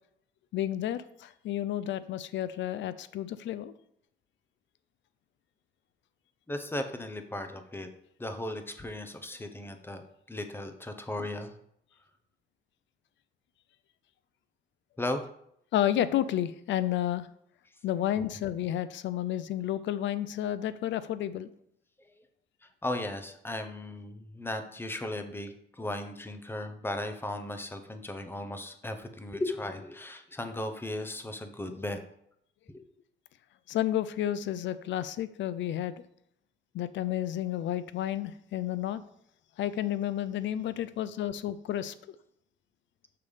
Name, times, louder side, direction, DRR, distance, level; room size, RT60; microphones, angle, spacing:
voice 1, 0.5-3.7 15.7-17.3 17.8-21.5 33.7-36.0 36.7-39.0 39.6-41.9, left 11 dB, 70° left, 15 dB, 0.4 m, -31 dB
voice 2, 6.5-7.9 8.2-11.5 15.0-15.3 22.0-22.2 22.6-32.0 32.7-32.8, left 1 dB, 10° left, 7 dB, 0.7 m, -36 dB
6.6 x 3.3 x 5.5 m, 0.73 s
cardioid pair, 90°, 20 cm